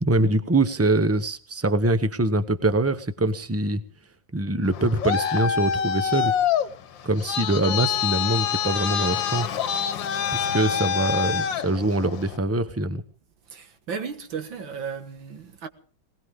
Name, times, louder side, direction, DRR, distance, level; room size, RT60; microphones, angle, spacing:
voice 1, 0.0-3.8 4.3-6.3 7.0-9.5 10.3-13.0, right 2 dB, 20° right, 0.3 m, -23 dB
Traffic noise roadway noise, 4.7-12.4, left 8 dB, 75° left, 1.7 m, -26 dB
voice 2, 13.5-15.7, right 6 dB, 75° right, 2.3 m, -34 dB
19.5 x 19.5 x 3.6 m
omnidirectional pair, 2.1 m